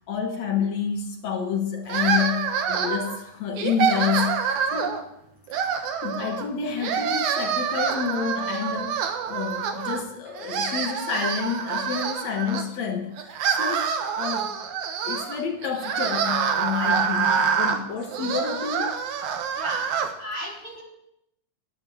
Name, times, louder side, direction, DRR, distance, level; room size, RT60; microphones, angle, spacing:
voice 1, 0.1-4.4 4.7-5.1 6.0-13.3 13.6-14.5 15.0-19.1, left 7 dB, 70° left, 3 dB, 2.6 m, -29 dB
sound 1, 1.9-3.2 3.6-5.0 5.5-6.5 6.8-10.0 10.4-12.6 13.2-20.1, right 7 dB, 80° right, 2.6 m, -26 dB
voice 2, 19.6-19.9 20.2-20.8, equal, 20° right, -3 dB, 3.1 m, -34 dB
11.5 x 10.5 x 7.3 m, 0.79 s
omnidirectional pair, 3.4 m